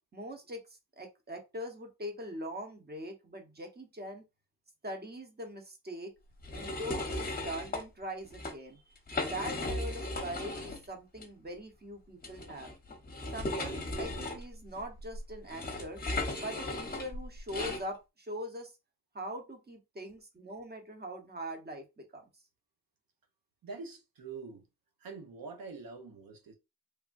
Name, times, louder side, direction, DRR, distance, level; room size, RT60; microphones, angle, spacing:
voice 1, 0.1-4.2 4.8-6.1 6.5-8.8 9.2-12.7 13.3-16.0 16.4-18.7 19.1-22.2, equal, 25° right, 1.0 m, -42 dB
sound 1, 6.4-7.8 8.2-8.5 9.0-10.8 11.2-11.3 12.2-17.8, left 2 dB, 25° left, 0.9 m, -36 dB
voice 2, 23.6-24.7 25.0-26.5, right 4 dB, 65° right, 0.9 m, -45 dB
3.4 x 2.2 x 2.5 m
cardioid pair, 75°, 37 cm